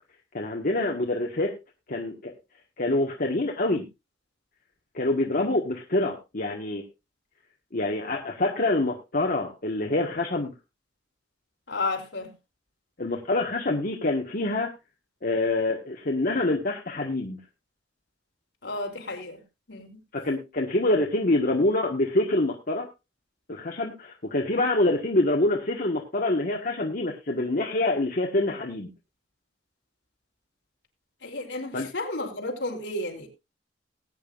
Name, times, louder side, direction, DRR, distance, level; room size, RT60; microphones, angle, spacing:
voice 1, 0.3-1.5 1.9-2.3 2.8-3.8 4.9-6.8 7.7-10.5 13.0-14.7 15.2-17.4 20.2-22.9 23.5-28.9 31.7-31.9, left 2 dB, 55° left, 1.5 m, -26 dB
voice 2, 11.7-12.3 18.6-19.4 19.7-20.0 31.2-33.3, left 2 dB, 75° left, 3.3 m, -32 dB
20.0 x 9.1 x 2.5 m
head